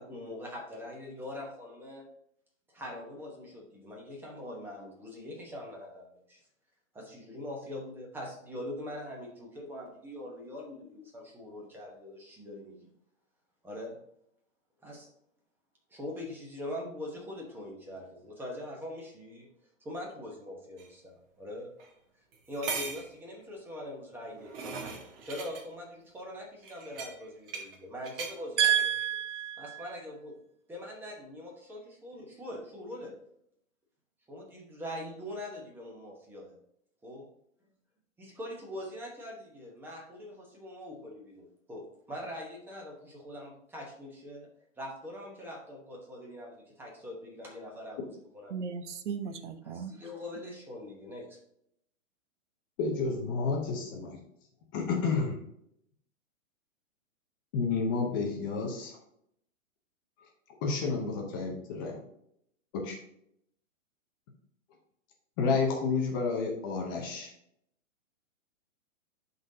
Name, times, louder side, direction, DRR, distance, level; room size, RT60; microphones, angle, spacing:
voice 1, 0.0-2.0 2.7-6.4 6.9-12.7 13.6-14.0 14.8-15.1 15.9-19.5 19.8-21.7 22.5-28.7 29.6-30.4 30.7-33.1 34.3-36.5 37.0-37.3 38.2-44.5 44.8-48.6 49.6-51.4, left 1 dB, 5° right, -1 dB, 0.9 m, -42 dB
sound 1, 20.8-20.9 21.8-21.9 22.3-23.1 24.1-25.6 26.6-27.8 28.0-28.4 28.8-29.0, right 5 dB, 45° right, 1.4 m, -39 dB
voice 2, 28.6-29.9 48.5-50.0, right 9 dB, 60° right, 9 dB, 0.9 m, -30 dB
voice 3, 52.8-54.2 54.7-55.4 57.5-59.0 60.6-62.0 62.7-63.0 65.4-67.3, left 4 dB, 15° left, 0 dB, 0.5 m, -30 dB
11.0 x 4.0 x 2.7 m, 0.73 s
hypercardioid pair, 155°, 40 cm